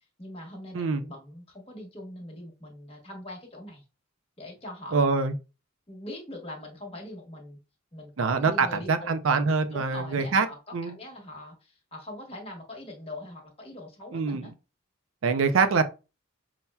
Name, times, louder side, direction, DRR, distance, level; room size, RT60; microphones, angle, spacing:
voice 1, 0.2-3.8 4.4-5.0 5.9-7.6 7.9-9.1 9.7-14.5, left 1 dB, 30° left, 1.0 m, -42 dB
voice 2, 4.9-5.3 8.2-10.5 10.7-10.9 14.1-14.5 15.2-15.8, right 4 dB, 65° right, 0.5 m, -24 dB
5.5 x 2.1 x 2.2 m
head